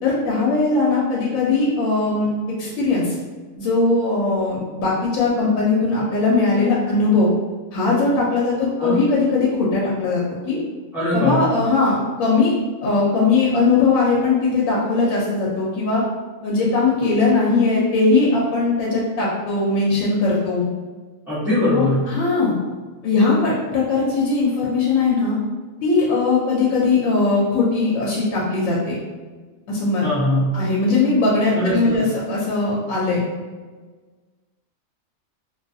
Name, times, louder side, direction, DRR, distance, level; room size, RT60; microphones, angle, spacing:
voice 1, 0.0-2.3 2.6-3.2 3.6-7.3 7.7-10.6 11.1-12.5 12.8-16.0 16.4-20.7 21.7-22.5 23.0-25.4 25.8-29.0 29.7-30.0 30.5-33.2, left 3 dB, 85° left, -5 dB, 1.0 m, -19 dB
voice 2, 10.9-11.4 21.3-22.1 30.0-30.5 31.5-32.1, left 1 dB, ahead, -16 dB, 0.6 m, -21 dB
2.5 x 2.3 x 2.5 m, 1.4 s
omnidirectional pair, 1.4 m